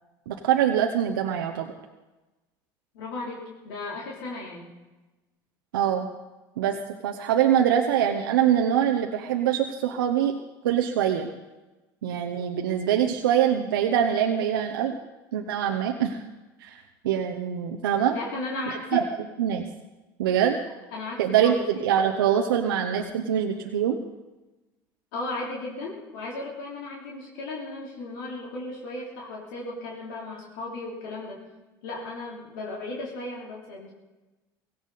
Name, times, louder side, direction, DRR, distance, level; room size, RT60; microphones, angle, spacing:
voice 1, 0.3-1.7 5.7-6.1 6.6-6.8 7.0-10.3 10.6-11.3 12.0-14.9 15.3-16.2 16.6-18.2 18.9-19.0 19.4-19.7 20.2-20.6 21.2-24.0, right 9 dB, 90° right, 3 dB, 0.9 m, -24 dB
voice 2, 2.9-4.7 18.0-19.1 20.9-21.9 25.1-31.4 31.8-33.9, left 2 dB, 80° left, -3 dB, 3.2 m, -35 dB
17.0 x 16.0 x 4.1 m, 1.1 s
hypercardioid pair, 80°, 11 cm